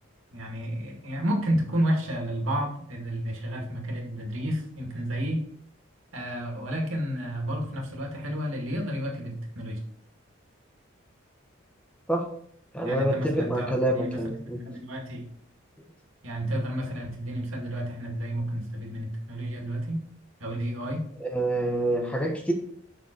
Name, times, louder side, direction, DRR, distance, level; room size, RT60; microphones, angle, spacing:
voice 1, 0.3-5.5 6.1-9.8 12.8-14.2 14.7-15.2 16.2-20.0 20.4-21.1, equal, 75° right, 1 dB, 2.2 m, -31 dB
voice 2, 12.7-14.6 21.2-22.5, right 1 dB, 5° left, 2 dB, 1.1 m, -26 dB
7.5 x 6.2 x 4.5 m, 0.64 s
head